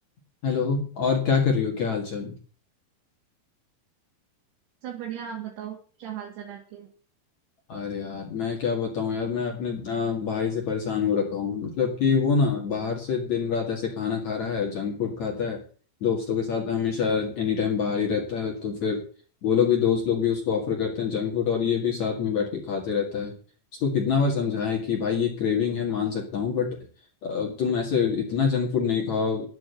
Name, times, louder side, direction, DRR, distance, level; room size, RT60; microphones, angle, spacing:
voice 1, 0.4-2.3 7.7-15.6 16.0-19.0 19.4-23.3 23.8-26.7 27.2-29.4, left 6 dB, 50° left, 0 dB, 2.9 m, -26 dB
voice 2, 4.8-6.9, right 9 dB, 70° right, 0 dB, 4.3 m, -37 dB
11.0 x 8.9 x 8.0 m, 0.42 s
omnidirectional pair, 5.1 m